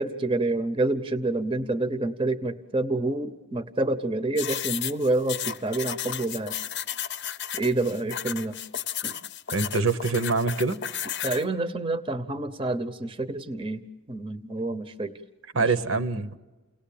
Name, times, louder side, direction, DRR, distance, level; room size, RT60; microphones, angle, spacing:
voice 1, 0.0-6.6 7.5-8.6 9.0-9.2 11.2-13.8 14.1-15.1 15.5-15.7, right 2 dB, 25° right, 12 dB, 0.8 m, -28 dB
sound 1, 4.4-11.4, left 9 dB, 50° left, 0.7 m, -33 dB
voice 2, 9.5-10.8 15.5-16.4, right 4 dB, 65° right, 13 dB, 0.9 m, -25 dB
29.5 x 18.0 x 8.6 m, 1.2 s
head